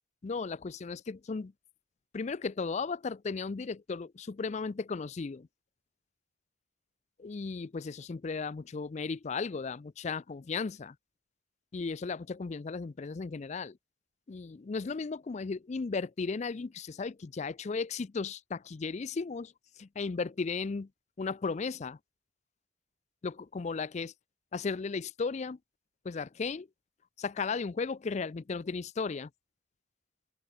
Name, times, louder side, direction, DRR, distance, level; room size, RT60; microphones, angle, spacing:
voice 1, 0.2-1.5 2.1-5.5 7.2-11.0 11.7-13.8 14.3-20.9 21.2-22.0 23.2-24.1 24.5-25.6 26.0-26.7 27.2-29.3, left 4 dB, 35° left, 0.4 m, -35 dB
head